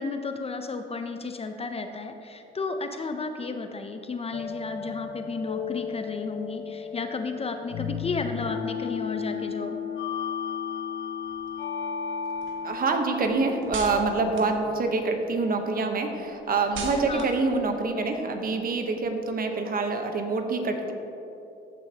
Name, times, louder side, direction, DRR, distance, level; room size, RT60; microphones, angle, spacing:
voice 1, 0.0-9.8 17.0-17.3, left 3 dB, 30° left, 7 dB, 0.6 m, -33 dB
sound 1, 4.3-14.4, left 7 dB, 70° left, 0.6 m, -34 dB
sound 2, 11.2-15.4 15.8-19.2, right 3 dB, 75° right, 1.1 m, -43 dB
voice 2, 12.6-20.9, right 3 dB, 45° right, 5 dB, 1.0 m, -26 dB
14.5 x 6.1 x 2.9 m, 2.8 s
cardioid pair, 90°, 20 cm